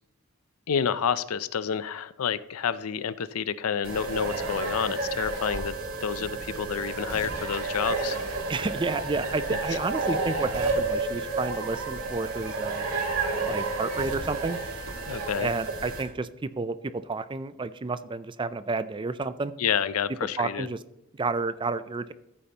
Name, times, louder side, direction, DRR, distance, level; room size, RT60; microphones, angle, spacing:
voice 1, 0.7-5.7 6.0-8.2 9.5-9.6 15.1-15.5 19.6-20.7, left 7 dB, 85° left, 15 dB, 0.5 m, -29 dB
sound 1, 3.8-16.0, right 3 dB, 85° right, 2.6 m, -31 dB
voice 2, 8.5-12.9 13.5-14.6 15.4-16.8 17.1-19.5 20.4-20.8 21.1-22.1, right 3 dB, 20° right, 14 dB, 0.4 m, -30 dB
14.0 x 8.6 x 2.9 m, 0.87 s
head